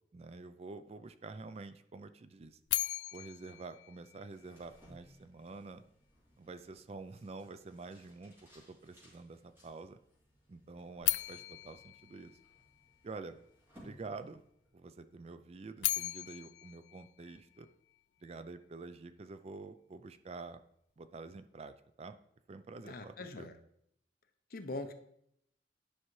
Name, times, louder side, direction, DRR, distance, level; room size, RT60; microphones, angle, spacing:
voice 1, 0.1-2.6 3.1-5.8 6.4-10.0 10.5-12.4 13.0-13.4 13.8-14.5 14.7-17.7 18.2-20.6 21.0-22.2 22.5-23.5, right 3 dB, 35° right, 11 dB, 0.4 m, -48 dB
sound 1, 2.7-4.8 11.0-13.2 15.5-18.0, left 17 dB, 85° left, 0.3 m, -38 dB
sound 2, 4.2-14.8, equal, 15° right, 2.9 m, -63 dB
voice 2, 22.8-23.5 24.5-24.9, left 2 dB, 55° left, 7 dB, 0.7 m, -42 dB
10.0 x 5.7 x 3.1 m, 0.72 s
head